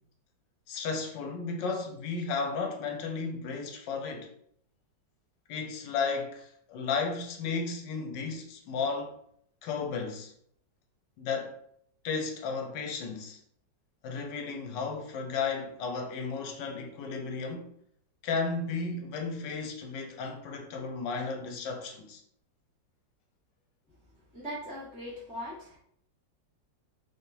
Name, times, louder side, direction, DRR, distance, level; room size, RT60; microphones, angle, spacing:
voice 1, 0.7-4.3 5.5-9.1 9.6-10.3 11.2-11.6 12.0-13.4 14.0-17.7 18.2-22.2, left 4 dB, 75° left, 1.4 m, -34 dB
voice 2, 24.3-25.8, equal, 5° right, 1.4 m, -40 dB
3.6 x 3.6 x 2.8 m
omnidirectional pair, 2.0 m